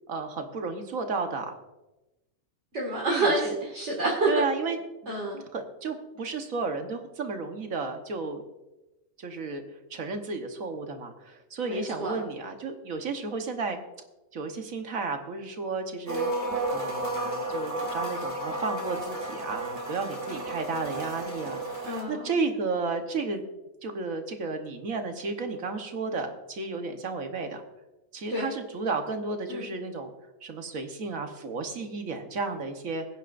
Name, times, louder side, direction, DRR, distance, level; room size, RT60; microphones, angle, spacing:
voice 1, 0.1-1.5 3.1-3.5 4.3-4.8 5.5-8.4 9.2-9.6 9.9-13.8 14.3-16.3 16.7-21.7 22.1-23.4 23.8-27.6 28.1-30.1 30.4-33.1, right 4 dB, 65° right, 5 dB, 1.5 m, -33 dB
voice 2, 2.7-4.3 5.1-5.4 11.6-12.2 21.9-22.3 28.3-28.5 29.5-29.7, right 2 dB, 50° right, -3 dB, 2.3 m, -28 dB
sound 1, 16.1-22.0, right 1 dB, 10° right, 2.3 m, -32 dB
21.0 x 9.9 x 2.5 m, 1.0 s
omnidirectional pair, 1.5 m